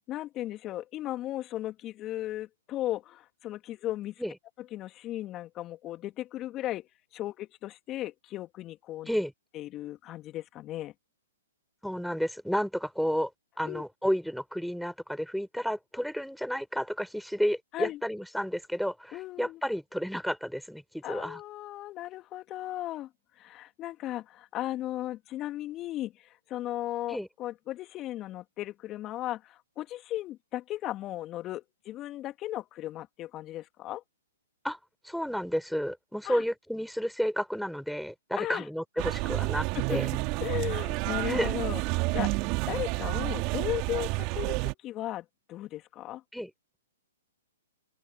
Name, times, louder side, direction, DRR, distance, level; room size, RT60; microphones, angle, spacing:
voice 1, 0.1-4.1 4.6-9.1 9.5-10.9 13.6-13.8 17.7-18.0 19.1-19.6 21.0-34.0 36.2-36.4 38.4-38.7 39.7-41.8 42.1-42.4 42.7-46.2, left 14 dB, 30° left, 2.4 m, -36 dB
voice 2, 11.8-13.3 13.6-21.4 27.1-27.3 34.6-34.8 35.0-40.1 41.3-41.6 46.3-46.5, equal, ahead, 5.5 m, -31 dB
sound 1, 39.0-44.7, right 27 dB, 35° right, 3.0 m, -30 dB
open air
hypercardioid pair, 125°, 0 cm